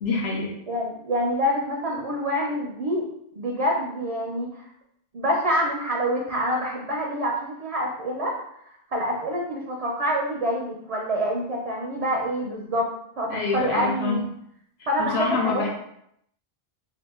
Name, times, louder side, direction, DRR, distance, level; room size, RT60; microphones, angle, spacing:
voice 1, 0.0-0.5 13.3-14.2 15.0-15.7, left 4 dB, 80° left, -1 dB, 0.9 m, -26 dB
voice 2, 0.7-3.1 3.4-4.6 5.1-8.4 8.9-12.9 13.2-14.2 14.9-15.7, equal, 50° right, -1 dB, 0.5 m, -26 dB
2.8 x 2.3 x 3.5 m, 0.74 s
omnidirectional pair, 1.1 m